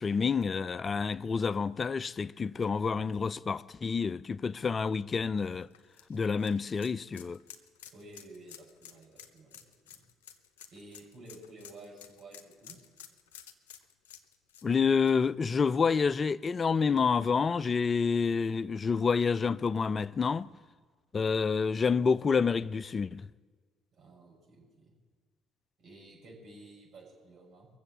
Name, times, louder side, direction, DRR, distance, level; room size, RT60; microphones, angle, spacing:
voice 1, 0.0-5.7 6.1-7.4 14.6-20.5 21.1-23.2, left 5 dB, 35° left, 0.4 m, -28 dB
sound 1, 5.4-16.2 16.5-16.6 18.1-18.2, left 9 dB, 85° left, 0.7 m, -53 dB
voice 2, 7.9-10.0 10.7-12.8 23.9-25.0 25.8-27.7, right 2 dB, 60° right, 6.4 m, -52 dB
23.0 x 7.7 x 7.3 m
hypercardioid pair, 60°, 0 cm